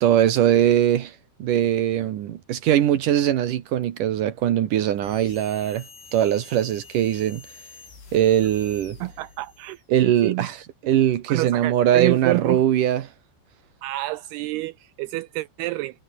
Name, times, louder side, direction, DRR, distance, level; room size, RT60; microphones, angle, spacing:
voice 1, 0.0-5.9 6.1-7.4 8.1-9.0 9.9-10.6 10.8-13.1, right 11 dB, 65° right, 2.3 m, -21 dB
sound 1, 5.0-9.9, left 5 dB, 60° left, 9.2 m, -47 dB
voice 2, 9.0-10.5 11.3-12.6 13.8-16.0, right 19 dB, 90° right, 2.3 m, -28 dB
omnidirectional pair, 5.3 m